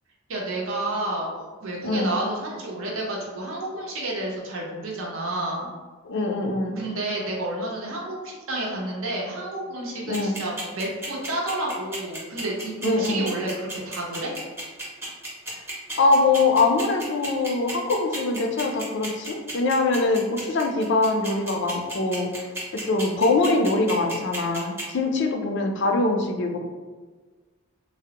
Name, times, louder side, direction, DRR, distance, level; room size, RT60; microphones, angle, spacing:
voice 1, 0.3-5.7 6.8-14.3, right 1 dB, 70° right, -3 dB, 0.7 m, -30 dB
voice 2, 1.8-2.2 6.0-6.8 10.1-10.4 12.8-13.3 16.0-22.3 22.7-26.6, left 3 dB, 50° left, 4 dB, 0.3 m, -23 dB
sound 1, 10.1-24.8, right 2 dB, 10° right, 0.6 m, -34 dB
3.3 x 2.0 x 2.8 m, 1.4 s
head